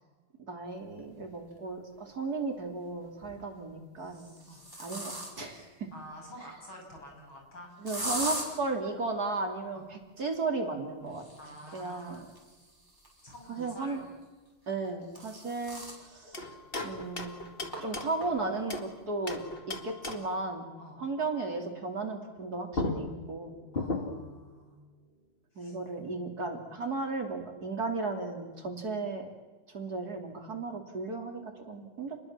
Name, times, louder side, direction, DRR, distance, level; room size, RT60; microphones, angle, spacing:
voice 1, 0.5-4.3 4.8-5.9 7.8-11.3 11.7-12.3 13.5-14.0 14.7-16.4 16.8-17.5 17.8-20.7 21.0-23.5 25.6-29.3 29.7-32.2, right 3 dB, 45° right, 3 dB, 3.5 m, -35 dB
sound 1, 1.5-1.6 3.0-3.4 4.0-5.6 7.9-8.5 11.1-13.7 14.7-16.0 16.5-16.6 16.9-17.0 17.7-17.8 18.2-18.6, right 1 dB, 10° right, 6.2 m, -40 dB
voice 2, 5.9-7.7 9.7-9.9 11.4-12.2 13.2-14.0 20.8-21.0 23.7-24.8 25.5-25.8, equal, 65° left, 1 dB, 7.8 m, -48 dB
sound 2, 16.3-18.9 19.3-20.4 22.4-22.5 22.7-24.4, left 2 dB, 25° left, 2.2 m, -37 dB
29.5 x 21.5 x 7.4 m, 1.3 s
omnidirectional pair, 2.4 m